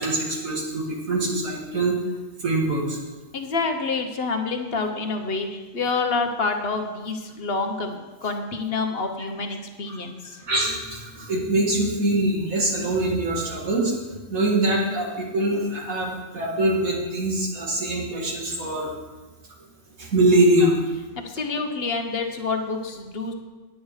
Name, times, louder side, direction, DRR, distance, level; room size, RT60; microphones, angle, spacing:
voice 1, 0.0-2.0 2.4-3.0 9.9-10.0 10.3-14.0 14.3-18.9 20.0-20.7, right 1 dB, 85° right, -2 dB, 2.5 m, -23 dB
voice 2, 3.3-10.2 21.3-23.3, left 4 dB, 50° left, 5 dB, 1.1 m, -27 dB
10.5 x 8.8 x 4.8 m, 1.3 s
omnidirectional pair, 1.4 m